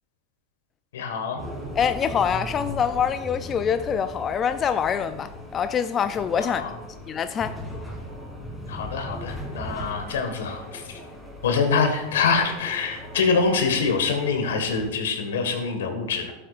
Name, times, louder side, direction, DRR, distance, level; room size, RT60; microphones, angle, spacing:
voice 1, 0.9-1.4 6.4-6.7 8.7-11.0 11.4-16.3, left 5 dB, 90° left, 1.6 m, -25 dB
sound 1, 1.4-14.9, left 1 dB, 5° left, 2.6 m, -38 dB
voice 2, 1.8-6.6 7.1-7.6, left 7 dB, 30° left, 0.4 m, -25 dB
13.0 x 7.7 x 2.5 m
supercardioid pair, 125°, 0 cm